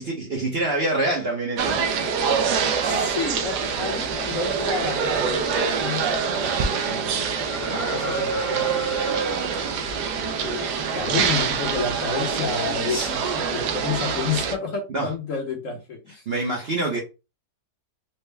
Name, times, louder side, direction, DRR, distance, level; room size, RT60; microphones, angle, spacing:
voice 1, 0.0-1.9 12.9-13.1 14.9-15.1 16.3-17.0, right 2 dB, 50° right, 0.8 m, -26 dB
sound 1, 1.6-14.6, right 6 dB, 75° right, 1.1 m, -25 dB
voice 2, 2.8-9.4 10.4-16.3, left 5 dB, 55° left, 1.1 m, -31 dB
Filtered Ah, 7.4-11.2 13.1-13.2, left 5 dB, 75° left, 0.4 m, -38 dB
4.3 x 2.1 x 3.2 m
omnidirectional pair, 1.8 m